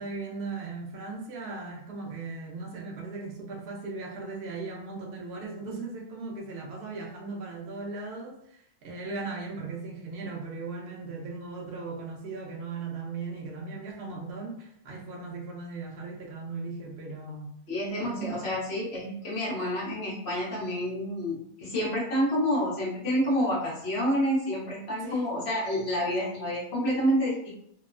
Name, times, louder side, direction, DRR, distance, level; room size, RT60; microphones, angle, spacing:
voice 1, 0.0-17.6 18.0-18.5 25.0-25.3, right 3 dB, 80° right, -1 dB, 0.5 m, -38 dB
voice 2, 17.7-27.5, equal, 50° left, -5 dB, 0.9 m, -28 dB
2.9 x 2.0 x 2.4 m, 0.71 s
omnidirectional pair, 1.7 m